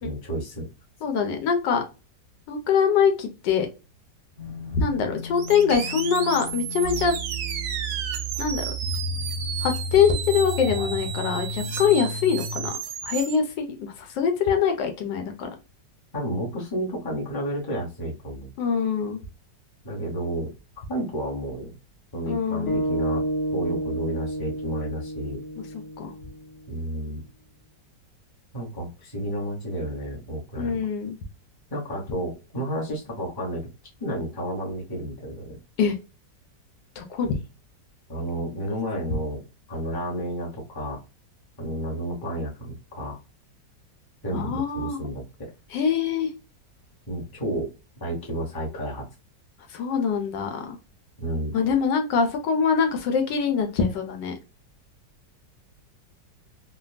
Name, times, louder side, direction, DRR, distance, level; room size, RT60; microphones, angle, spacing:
voice 1, 0.0-0.7 16.1-18.5 19.8-20.5 20.9-21.8 22.1-23.2 23.5-25.4 26.7-27.2 28.5-30.8 31.7-33.7 34.0-35.6 38.1-39.4 39.7-41.0 41.6-43.2 44.2-45.5 47.1-47.7 48.0-49.0 51.2-51.6, right 1 dB, 15° left, -3 dB, 0.8 m, -31 dB
voice 2, 1.0-1.8 2.5-3.7 4.7-7.2 8.4-8.7 9.6-12.7 13.0-15.5 18.6-19.2 22.3-22.8 26.0-26.1 30.5-31.2 35.8-36.0 37.0-37.4 44.3-45.1 45.7-46.3 49.7-50.8 51.5-54.3, left 6 dB, 85° left, 5 dB, 1.3 m, -24 dB
sound 1, 4.4-12.7, equal, 45° right, 0.8 m, -33 dB
sound 2, 5.3-13.3, right 8 dB, 70° right, 1.0 m, -33 dB
sound 3, 22.7-27.0, right 1 dB, 65° left, 0.7 m, -30 dB
3.3 x 2.2 x 2.3 m, 0.30 s
omnidirectional pair, 1.9 m